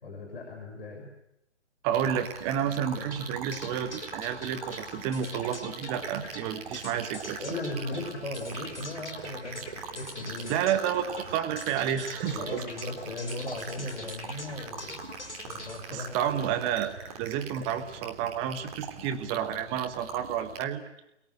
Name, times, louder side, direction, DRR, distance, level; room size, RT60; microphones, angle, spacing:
voice 1, 0.0-1.1 7.4-10.6 12.3-15.0 15.5-16.3, left 2 dB, 50° left, 3 dB, 6.9 m, -37 dB
voice 2, 1.8-7.6 10.5-12.6 15.9-20.8, right 9 dB, 15° right, 10 dB, 1.4 m, -30 dB
sound 1, 1.9-20.6, right 6 dB, 30° right, 3.0 m, -42 dB
sound 2, 2.9-17.0, left 2 dB, 70° left, 4.3 m, -44 dB
29.5 x 22.0 x 7.8 m, 0.82 s
figure-of-eight pair, 135°, 35 cm